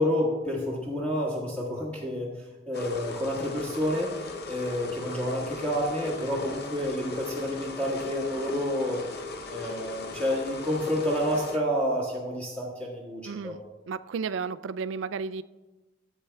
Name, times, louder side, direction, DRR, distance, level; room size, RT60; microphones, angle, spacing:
voice 1, 0.0-2.3 2.7-4.1 4.5-9.0 9.5-13.5, left 1 dB, 5° left, -6 dB, 1.5 m, -29 dB
sound 1, 2.7-11.6, left 3 dB, 55° left, 0.7 m, -38 dB
voice 2, 13.3-13.6 13.9-15.4, right 5 dB, 75° right, 14 dB, 0.3 m, -33 dB
15.0 x 8.3 x 2.3 m, 1.1 s
head